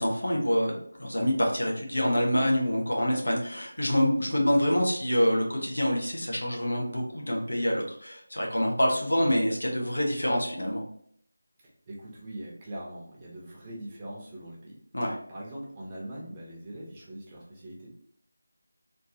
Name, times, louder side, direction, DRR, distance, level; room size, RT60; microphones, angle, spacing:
voice 1, 0.0-10.8 14.9-15.2, equal, 75° left, -1 dB, 1.2 m, -26 dB
voice 2, 11.9-14.8 15.3-17.9, right 1 dB, 20° right, -5 dB, 0.9 m, -42 dB
3.5 x 2.7 x 2.8 m, 0.64 s
figure-of-eight pair, 165°, 0 cm